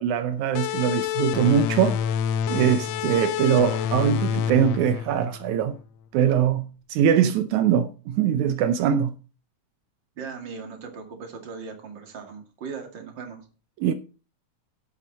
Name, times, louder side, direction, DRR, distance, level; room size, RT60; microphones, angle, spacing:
voice 1, 0.0-2.0 2.5-5.8 6.1-6.6 6.9-9.1 13.8-13.9, right 9 dB, 80° right, 2.1 m, -22 dB
sound 1, 0.5-5.8, left 8 dB, 80° left, 1.5 m, -27 dB
voice 2, 10.2-13.5, right 5 dB, 40° right, 2.6 m, -38 dB
11.5 x 8.2 x 4.1 m
omnidirectional pair, 3.4 m